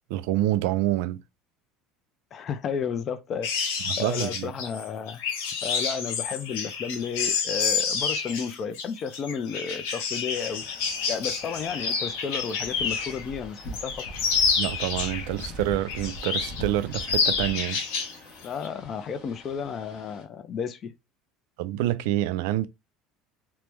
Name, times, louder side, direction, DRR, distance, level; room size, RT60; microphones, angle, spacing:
voice 1, 0.1-1.2 3.9-4.5 14.6-17.8 21.6-22.7, right 14 dB, 80° right, 0.3 m, -27 dB
voice 2, 2.3-5.2 5.6-10.6 11.1-14.0 18.4-20.9, left 6 dB, 30° left, 0.3 m, -32 dB
sound 1, 3.4-13.2 13.6-15.5 15.9-16.6 16.9-18.1 18.4-18.7, left 5 dB, 90° left, 0.7 m, -29 dB
sound 2, 10.3-20.2, equal, 50° left, 0.8 m, -42 dB
3.0 x 2.0 x 3.3 m
cardioid pair, 165°, 0 cm